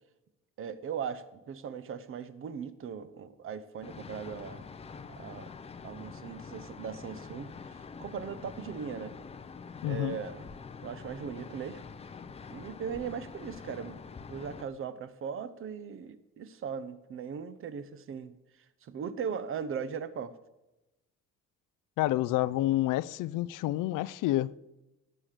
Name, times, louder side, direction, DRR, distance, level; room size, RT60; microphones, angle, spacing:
voice 1, 0.6-4.7 5.1-5.5 5.8-9.2 9.8-10.5 10.8-11.8 12.5-14.0 14.3-18.3 18.8-20.3, right 7 dB, 45° right, 0.9 m, -39 dB
sound 1, 3.8-14.6, left 5 dB, 20° left, 0.6 m, -46 dB
voice 2, 9.8-10.2 22.0-24.5, left 15 dB, 90° left, 0.5 m, -28 dB
17.5 x 7.6 x 6.6 m
cardioid pair, 170°, 31 cm